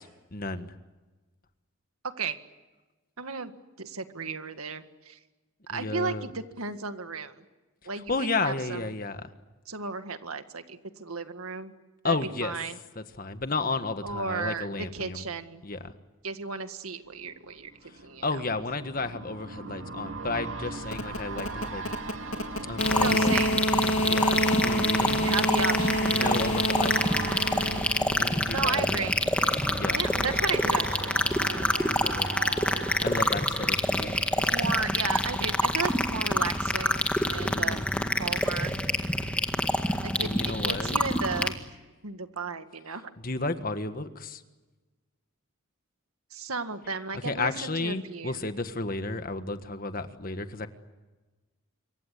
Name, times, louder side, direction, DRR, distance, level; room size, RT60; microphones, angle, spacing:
voice 1, 0.3-0.7 5.7-6.3 8.1-9.3 12.0-12.5 12.9-15.2 15.6-15.9 18.2-21.8 22.6-23.3 24.0-25.3 26.1-27.6 28.2-29.1 29.7-30.0 31.8-32.3 32.8-34.2 37.4-38.4 39.8-41.0 43.2-44.4 47.2-50.7, left 3 dB, 40° left, 9 dB, 1.6 m, -33 dB
voice 2, 3.2-3.5 3.8-5.2 5.7-7.3 7.9-8.8 9.7-11.7 12.0-12.2 12.4-12.8 14.0-15.6 16.2-17.7 18.0-18.2 22.9-23.6 25.2-26.4 28.5-29.2 29.9-31.2 34.1-34.2 34.5-37.9 38.2-38.7 40.0-41.6 42.0-43.1 46.3-48.4, right 4 dB, 85° right, 9 dB, 1.9 m, -34 dB
sound 1, 17.1-34.9 35.3-35.4, right 3 dB, 65° right, 2.4 m, -40 dB
sound 2, 20.8-28.7, equal, 70° left, 3.1 m, -29 dB
sound 3, 22.8-41.5, left 1 dB, 5° left, 1.8 m, -27 dB
27.0 x 24.0 x 8.4 m, 1.2 s
head